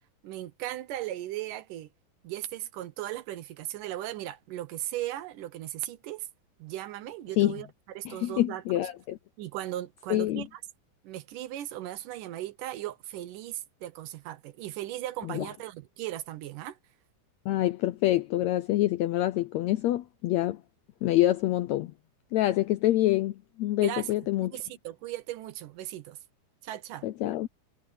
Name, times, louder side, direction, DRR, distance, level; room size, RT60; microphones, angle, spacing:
voice 1, 0.2-1.9 2.2-6.3 6.6-7.7 8.0-8.9 9.4-10.6 11.0-16.8 23.8-24.1 24.4-26.2 26.6-27.1, right 14 dB, 75° right, 2.6 m, -37 dB
voice 2, 8.0-9.2 10.1-10.4 15.2-15.5 17.4-20.6 21.0-21.9 22.3-24.5 27.0-27.5, left 15 dB, 80° left, 1.6 m, -26 dB
omnidirectional pair, 3.8 m